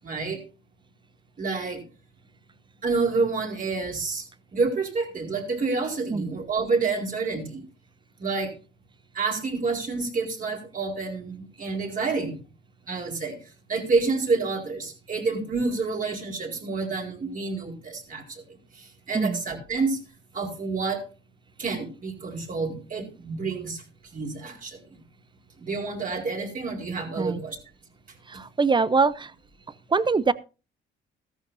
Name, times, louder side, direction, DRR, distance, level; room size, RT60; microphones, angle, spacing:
voice 1, 0.0-0.4 1.4-1.8 2.8-7.6 8.2-8.5 9.1-12.4 12.9-13.4 13.7-20.0 20.3-21.0 21.6-23.8 24.1-25.0 25.6-27.6, right 4 dB, 45° right, 1 dB, 4.4 m, -28 dB
voice 2, 28.3-29.3 29.9-30.3, right 4 dB, 25° right, 17 dB, 0.6 m, -23 dB
14.5 x 14.0 x 2.7 m, 0.32 s
cardioid pair, 90°, 20 cm